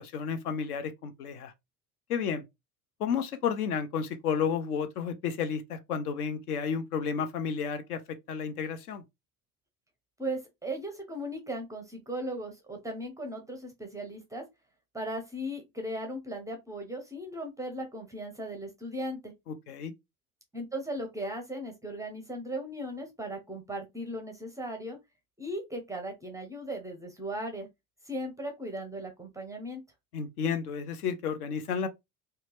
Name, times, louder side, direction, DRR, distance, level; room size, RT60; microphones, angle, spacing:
voice 1, 0.0-1.5 2.1-2.4 3.0-9.0 19.5-19.9 30.1-31.9, left 6 dB, 70° left, 0.6 m, -32 dB
voice 2, 10.2-14.4 14.9-19.3 20.5-25.0 25.4-27.7 28.0-29.8, right 1 dB, 5° right, 0.4 m, -37 dB
2.8 x 2.2 x 2.9 m
figure-of-eight pair, 65°, 48 cm